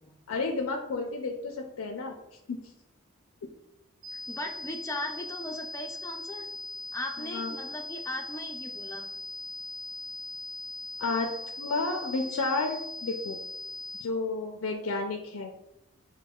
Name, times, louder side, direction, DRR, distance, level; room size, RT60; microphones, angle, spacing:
voice 1, 0.3-2.2 2.5-2.6 7.2-7.5 11.0-11.3 11.6-13.4 14.0-15.5, left 3 dB, 80° left, 2 dB, 0.4 m, -31 dB
sound 1, 4.0-14.0, left 2 dB, 75° right, 0.5 m, -40 dB
voice 2, 4.1-6.4 6.9-9.1, left 1 dB, 15° left, 2 dB, 0.4 m, -38 dB
5.9 x 2.2 x 2.3 m, 0.84 s
head